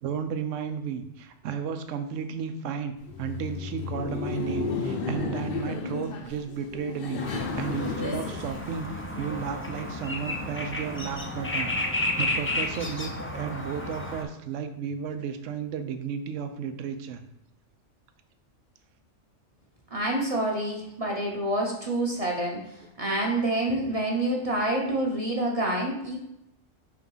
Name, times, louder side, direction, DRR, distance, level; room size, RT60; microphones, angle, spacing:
voice 1, 0.0-17.2, right 7 dB, 75° right, 8 dB, 1.0 m, -33 dB
Laughter, 3.0-9.3, left 4 dB, 55° left, 0.8 m, -33 dB
sound 1, 7.2-14.2, left 1 dB, 20° left, 0.3 m, -32 dB
voice 2, 19.9-26.2, right 1 dB, 30° right, -1 dB, 1.0 m, -27 dB
4.9 x 3.5 x 5.5 m, 0.82 s
omnidirectional pair, 1.3 m